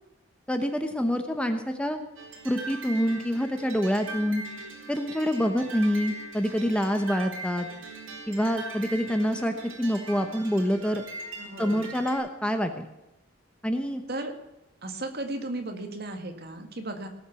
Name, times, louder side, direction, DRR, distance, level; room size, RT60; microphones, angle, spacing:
voice 1, 0.5-2.0 2.4-4.4 4.9-7.7 8.3-11.0 11.6-12.8 13.6-14.0, equal, 5° left, 6 dB, 0.9 m, -26 dB
sound 1, 2.2-12.2, right 2 dB, 75° right, 4.0 m, -41 dB
voice 2, 11.4-11.9 14.1-14.3 14.8-17.1, right 2 dB, 50° right, 5 dB, 2.0 m, -35 dB
18.5 x 7.3 x 7.1 m, 0.96 s
head